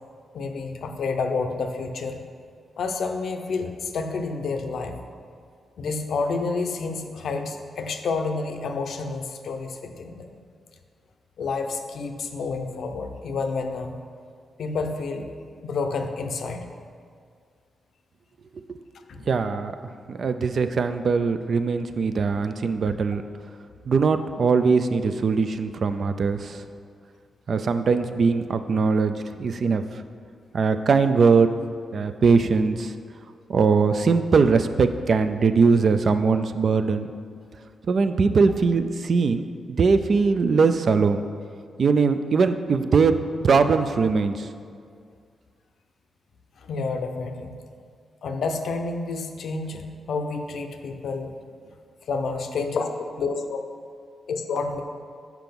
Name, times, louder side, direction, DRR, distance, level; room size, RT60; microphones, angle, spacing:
voice 1, 0.3-2.2 2.8-5.0 5.8-10.4 11.4-14.0 14.6-15.3 15.6-16.7 19.1-19.2 46.6-47.5 48.2-51.3 52.1-53.6 54.3-54.8, left 4 dB, 75° left, 5 dB, 0.6 m, -29 dB
voice 2, 19.2-19.7 20.1-23.2 23.9-26.6 27.5-29.8 30.5-31.5 31.9-33.0 33.5-37.1 37.9-41.2 41.8-43.2 43.4-44.5, right 5 dB, 60° right, 9 dB, 0.4 m, -21 dB
5.9 x 4.7 x 5.2 m, 2.2 s
cardioid pair, 55°, 0 cm